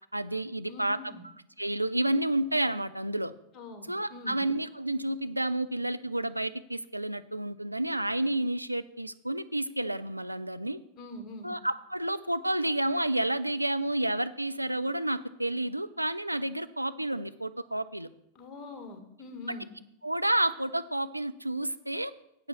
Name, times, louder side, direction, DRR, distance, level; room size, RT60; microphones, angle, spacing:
voice 1, 0.1-1.0 1.6-3.3 3.9-10.8 11.4-18.1 19.5-19.6 20.0-22.1, right 1 dB, 85° right, 11 dB, 0.4 m, -30 dB
voice 2, 0.7-1.2 3.5-4.4 11.0-11.5 18.3-19.7, left 2 dB, 25° left, 4 dB, 2.1 m, -43 dB
8.6 x 7.6 x 5.9 m, 0.79 s
figure-of-eight pair, 90°, 0 cm